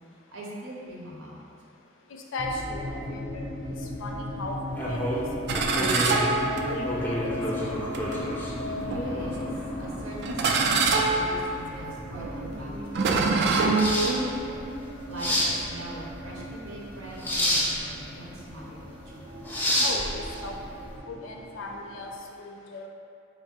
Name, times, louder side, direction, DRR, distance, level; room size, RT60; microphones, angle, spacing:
voice 1, 0.3-1.4 8.4-9.5 9.8-13.0 13.3-13.4 13.8-14.6 15.1-18.8 19.2-19.3, right 1 dB, 85° right, -5 dB, 0.8 m, -41 dB
voice 2, 2.1-4.6 4.9-5.3 5.6-6.1 6.4-7.8 19.7-20.6 21.1-22.9, left 2 dB, 70° left, 1 dB, 0.5 m, -37 dB
sound 1, 2.4-22.2, left 1 dB, 30° right, 0.7 m, -37 dB
sound 2, 4.7-20.9, equal, 10° left, 0.4 m, -31 dB
sound 3, 5.5-7.1 7.9-8.1 8.9-9.5 10.2-14.3, right 3 dB, 55° right, 0.3 m, -25 dB
3.8 x 2.6 x 3.6 m, 2.5 s
head